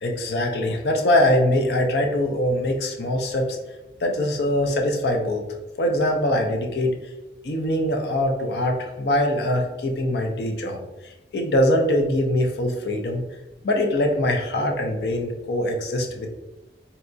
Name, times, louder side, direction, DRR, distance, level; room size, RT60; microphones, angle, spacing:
voice 1, 0.0-3.6 4.0-5.5 5.8-6.9 7.4-10.8 11.3-13.2 13.6-16.3, left 1 dB, 70° left, 2 dB, 0.5 m, -22 dB
3.9 x 2.2 x 2.6 m, 1.0 s
head